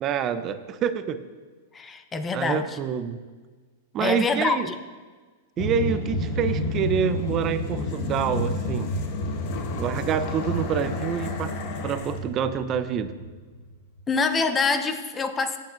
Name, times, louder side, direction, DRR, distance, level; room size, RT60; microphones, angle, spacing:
voice 1, 0.0-1.2 2.3-3.2 3.9-4.7 5.6-8.9 9.8-11.5 11.8-13.1, right 8 dB, 35° right, 11 dB, 0.7 m, -27 dB
voice 2, 1.7-2.8 4.0-4.7 14.1-15.6, left 4 dB, 20° left, 8 dB, 0.9 m, -25 dB
sound 1, 5.6-13.7, left 1 dB, 55° left, 1.3 m, -30 dB
17.0 x 8.4 x 2.7 m, 1.4 s
hypercardioid pair, 110°, 0 cm